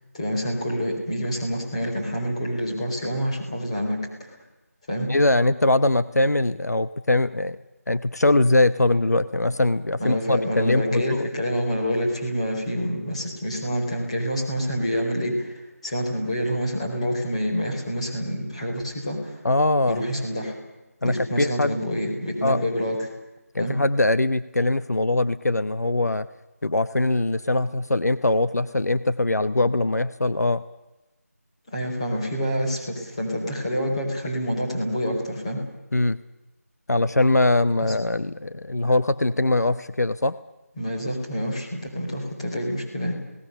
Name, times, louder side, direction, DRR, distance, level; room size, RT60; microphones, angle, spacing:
voice 1, 0.1-4.4 4.9-5.1 10.0-19.4 19.9-20.6 21.0-23.1 23.6-23.7 31.7-35.6 37.8-37.9 40.8-43.2, equal, 20° left, -1 dB, 4.7 m, -27 dB
voice 2, 5.1-7.6 7.9-11.2 19.4-20.0 21.0-21.8 22.4-22.6 23.5-26.3 26.6-30.6 35.9-36.2 36.9-40.3, left 2 dB, 80° left, 13 dB, 1.0 m, -22 dB
29.5 x 18.5 x 6.8 m, 1.0 s
figure-of-eight pair, 175°, 9 cm